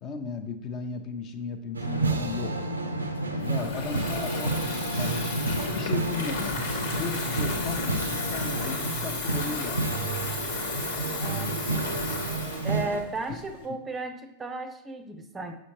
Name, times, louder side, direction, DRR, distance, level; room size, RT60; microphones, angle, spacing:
voice 1, 0.0-2.5 3.3-5.1 5.4-6.6 7.0-10.2 13.3-13.4, left 5 dB, 35° left, 6 dB, 0.7 m, -36 dB
sound 1, 1.7-13.0, right 3 dB, 80° right, 0.5 m, -32 dB
sound 2, 1.8-8.8, left 1 dB, 80° left, 0.5 m, -34 dB
Water tap faucet / Fill (with liquid), 3.4-13.7, left 3 dB, 60° left, 1.3 m, -34 dB
voice 2, 11.2-11.6 12.6-15.6, right 2 dB, 15° right, 7 dB, 0.5 m, -35 dB
6.3 x 6.1 x 2.9 m, 0.89 s
figure-of-eight pair, 90°, 0 cm